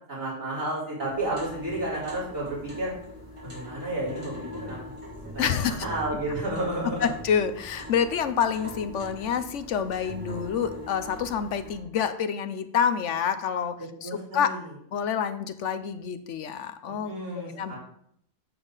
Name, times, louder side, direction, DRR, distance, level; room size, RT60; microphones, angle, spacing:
voice 1, 0.1-2.9 3.4-5.0 5.3-7.1 14.0-14.7 16.9-17.8, right 1 dB, 80° right, -8 dB, 4.5 m, -32 dB
sound 1, 1.0-11.8, equal, 25° right, 2.6 m, -42 dB
voice 2, 5.4-5.8 7.2-13.7 14.0-14.5 14.9-17.1 17.5-17.7, left 7 dB, 70° left, 10 dB, 1.0 m, -27 dB
8.8 x 7.3 x 4.0 m, 0.69 s
omnidirectional pair, 1.4 m